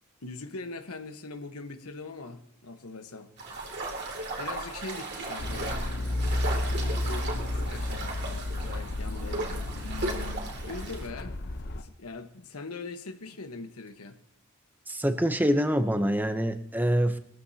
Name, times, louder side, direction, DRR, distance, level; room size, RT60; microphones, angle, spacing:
voice 1, 0.2-3.6 4.4-5.8 6.6-9.7 10.6-11.4 11.7-14.2, left 3 dB, 90° left, 7 dB, 1.2 m, -42 dB
sound 1, 3.4-11.1, right 2 dB, 50° right, 2.6 m, -36 dB
sound 2, 5.4-11.8, left 1 dB, 50° left, 0.8 m, -32 dB
voice 2, 14.9-17.2, equal, 10° right, 8 dB, 0.7 m, -25 dB
21.0 x 14.0 x 2.8 m, 0.71 s
head